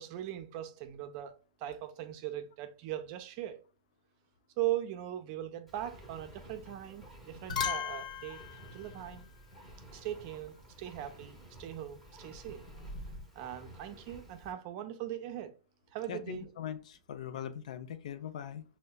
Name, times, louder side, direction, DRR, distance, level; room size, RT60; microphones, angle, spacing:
voice 1, 0.0-1.3 1.6-3.6 4.6-8.4 8.7-9.2 9.9-12.6 13.4-15.5 15.9-16.5, right 12 dB, 45° right, 0.5 m, -39 dB
Engine, 5.7-14.5, right 1 dB, 5° left, 0.8 m, -53 dB
sound 1, 6.7-7.0 7.3-9.9 12.3-13.2, left 7 dB, 90° left, 0.9 m, -39 dB
voice 2, 16.1-18.6, left 10 dB, 70° left, 0.4 m, -41 dB
5.3 x 2.1 x 2.2 m
hypercardioid pair, 130°, 4 cm